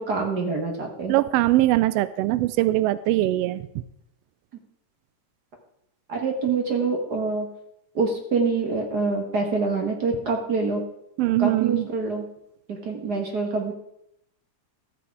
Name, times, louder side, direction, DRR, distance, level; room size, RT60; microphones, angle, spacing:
voice 1, 0.0-1.1 6.1-7.5 7.9-10.8 11.4-12.2 12.7-13.7, right 4 dB, 45° right, 2 dB, 1.4 m, -25 dB
voice 2, 1.1-3.8 11.2-11.9, right 16 dB, 90° right, 16 dB, 1.4 m, -22 dB
14.0 x 7.9 x 4.7 m, 0.77 s
omnidirectional pair, 3.4 m